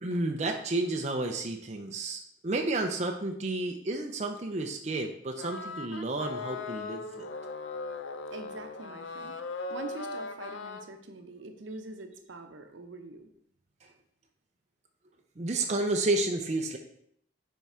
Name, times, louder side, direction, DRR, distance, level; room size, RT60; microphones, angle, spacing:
voice 1, 0.0-7.3 15.4-16.8, right 2 dB, 35° right, 3 dB, 0.5 m, -31 dB
sound 1, 5.4-10.9, left 3 dB, 80° left, 0.5 m, -38 dB
voice 2, 8.3-13.3, right 2 dB, 80° right, 6 dB, 0.8 m, -44 dB
5.8 x 4.6 x 4.3 m, 0.69 s
head